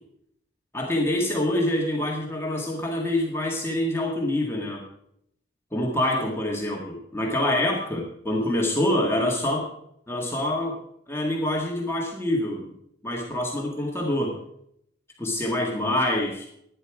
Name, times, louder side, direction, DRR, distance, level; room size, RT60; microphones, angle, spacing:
voice 1, 0.7-4.8 5.7-9.7 10.1-10.8 11.1-12.7 13.0-14.4 15.2-16.5, left 1 dB, 15° left, -1 dB, 1.9 m, -26 dB
12.5 x 9.7 x 4.8 m, 0.73 s
head